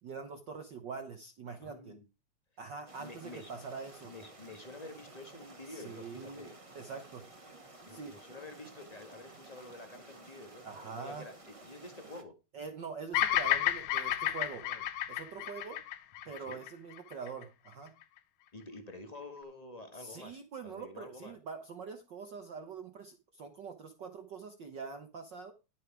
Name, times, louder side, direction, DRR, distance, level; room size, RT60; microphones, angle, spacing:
voice 1, 0.0-2.0 2.6-4.1 5.7-6.5 6.7-7.3 7.9-8.2 10.6-11.3 12.5-14.7 15.1-15.8 16.2-17.9 19.9-25.5, right 5 dB, 80° right, 7 dB, 0.9 m, -44 dB
voice 2, 1.6-2.0 3.0-3.5 4.0-6.6 7.9-12.3 14.6-14.8 15.3-15.4 16.5-16.6 18.5-21.4, left 2 dB, 40° left, 7 dB, 0.5 m, -49 dB
sound 1, 2.9-12.2, right 2 dB, 20° right, 0.8 m, -54 dB
Bird vocalization bird call bird song, 13.1-17.4, left 12 dB, 80° left, 2.5 m, -32 dB
11.5 x 8.1 x 4.8 m, 0.29 s
omnidirectional pair, 3.6 m